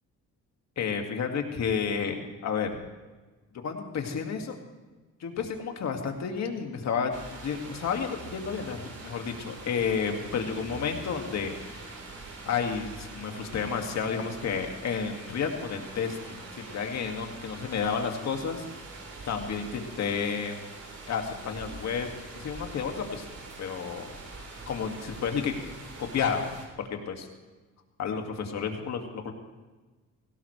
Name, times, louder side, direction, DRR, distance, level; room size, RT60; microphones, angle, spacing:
voice 1, 0.8-2.7 3.6-4.6 5.2-7.1 7.4-11.9 12.5-18.6 19.2-20.6 21.1-22.1 22.3-23.3 23.6-24.1 24.7-25.5 26.0-26.4 26.8-27.3 28.0-29.3, left 6 dB, 60° left, 4 dB, 2.2 m, -31 dB
sound 1, 7.1-26.7, right 3 dB, 50° right, 3.9 m, -44 dB
17.5 x 17.0 x 3.3 m, 1.3 s
cardioid pair, 90°, 30 cm